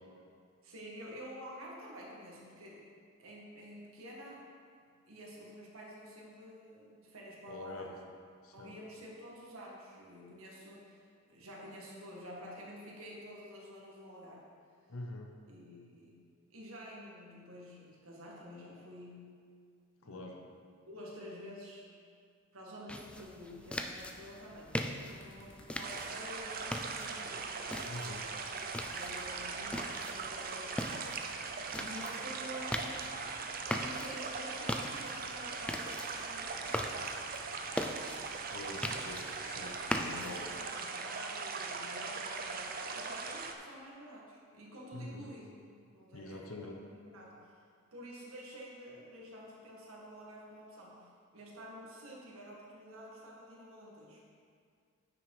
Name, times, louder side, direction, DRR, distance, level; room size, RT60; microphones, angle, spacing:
voice 1, 0.6-2.8 3.2-4.4 5.0-8.0 8.5-14.5 15.5-16.2 16.5-19.4 20.0-20.5 20.9-21.9 22.5-27.4 28.9-31.2 31.7-33.4 33.8-37.0 40.1-45.5 45.9-47.5 47.9-54.2, equal, 75° right, -3 dB, 1.9 m, -49 dB
voice 2, 7.5-7.9 8.4-8.8 14.9-15.3 20.0-20.4 27.8-28.3 38.5-40.5 44.9-45.3 46.1-46.8, left 2 dB, 75° left, 2 dB, 0.9 m, -45 dB
sound 1, 22.9-40.7, left 1 dB, 5° left, 0.3 m, -42 dB
sound 2, 25.2-29.5 30.4-30.6, left 2 dB, 60° left, 1.6 m, -64 dB
sound 3, 25.8-43.5, right 4 dB, 45° right, 0.6 m, -40 dB
9.1 x 6.1 x 4.9 m, 2.2 s
head